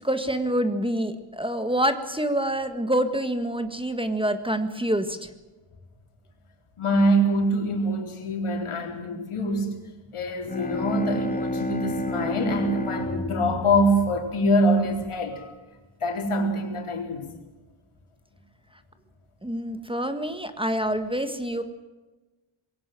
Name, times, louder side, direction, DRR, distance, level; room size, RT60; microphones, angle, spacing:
voice 1, 0.0-5.3 19.4-21.6, right 1 dB, 10° right, 9 dB, 1.6 m, -26 dB
voice 2, 6.8-9.8 10.1-15.5 16.0-17.3, equal, 85° left, 3 dB, 4.1 m, -24 dB
Bowed string instrument, 10.3-15.0, left 1 dB, 15° left, 2.2 m, -31 dB
22.0 x 17.5 x 7.6 m, 1.2 s
wide cardioid pair, 125°, 49 cm